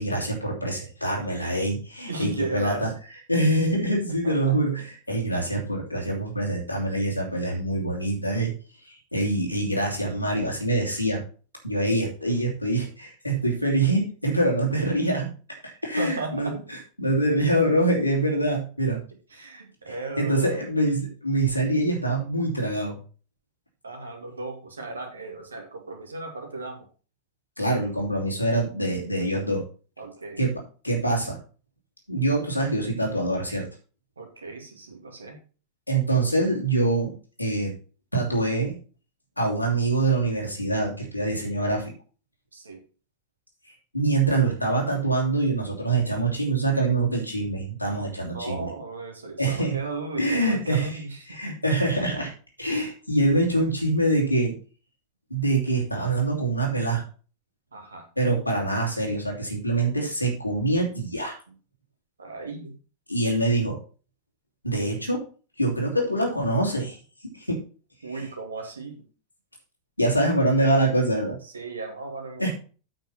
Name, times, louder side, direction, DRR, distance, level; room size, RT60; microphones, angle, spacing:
voice 1, 0.0-2.9 3.3-8.5 8.8-11.2 11.6-15.3 15.8-16.5 17.0-19.0 19.9-23.0 27.6-29.6 30.4-30.5 30.8-31.4 32.1-33.7 35.9-37.1 37.4-37.7 38.1-38.7 39.4-41.9 43.9-48.7 49.4-49.8 50.2-50.9 51.3-52.3 52.6-54.5 55.3-57.0 58.2-61.4 63.1-63.8 64.6-65.2 65.6-67.0 67.2-67.6 68.1-68.2 70.0-71.4 72.4-72.5, right 2 dB, 85° left, 0 dB, 3.0 m, -24 dB
voice 2, 2.1-2.9 4.2-4.5 16.0-16.5 19.3-20.7 23.8-26.9 30.0-30.4 34.2-35.4 42.5-42.8 48.3-51.6 57.7-58.0 61.5-61.6 62.2-62.8 68.0-69.0 71.5-72.5, right 3 dB, 75° right, 3 dB, 2.4 m, -36 dB
8.7 x 5.6 x 5.6 m, 0.37 s
figure-of-eight pair, 90°, 0 cm